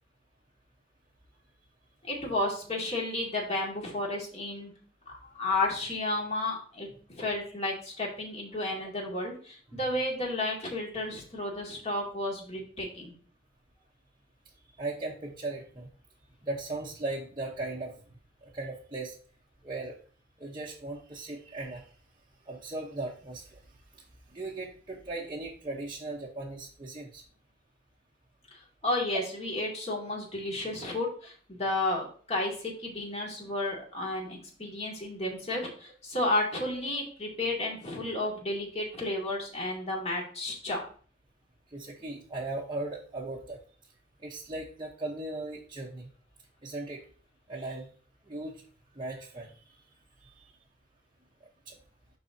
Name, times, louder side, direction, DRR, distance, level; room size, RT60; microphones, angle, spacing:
voice 1, 2.0-4.7 5.2-13.1 28.8-40.8, left 2 dB, 35° left, -2 dB, 2.2 m, -32 dB
voice 2, 14.8-15.9 16.4-18.0 18.4-19.2 19.6-20.0 20.4-21.8 22.5-23.6 24.3-27.2 41.7-43.6 44.2-46.1 46.6-47.0 47.5-47.9 48.3-48.6 48.9-49.5 50.2-50.3 51.7-51.8, right 2 dB, 25° right, -4 dB, 0.9 m, -37 dB
11.0 x 4.0 x 2.7 m, 0.42 s
head